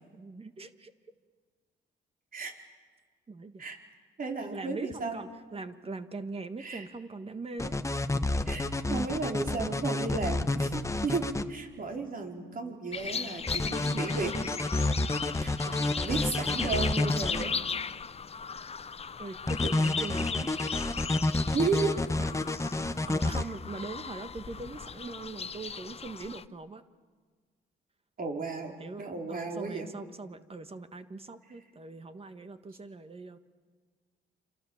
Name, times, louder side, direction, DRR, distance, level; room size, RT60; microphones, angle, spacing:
voice 1, 0.1-0.9 3.3-3.6 4.5-7.8 19.2-20.6 22.2-22.6 23.1-26.8 28.8-33.4, right 3 dB, 30° right, 10 dB, 1.5 m, -41 dB
voice 2, 4.2-5.2 6.6-6.9 8.5-14.3 15.4-17.6 19.6-19.7 21.5-22.0 28.2-29.9, right 4 dB, 45° right, 2 dB, 4.4 m, -34 dB
sound 1, 7.6-11.4 13.5-17.4 19.5-23.4, left 2 dB, 15° left, 1.2 m, -29 dB
sound 2, 12.9-26.5, left 6 dB, 30° left, 0.7 m, -37 dB
27.5 x 27.5 x 7.2 m, 1.5 s
cardioid pair, 90°, 20 cm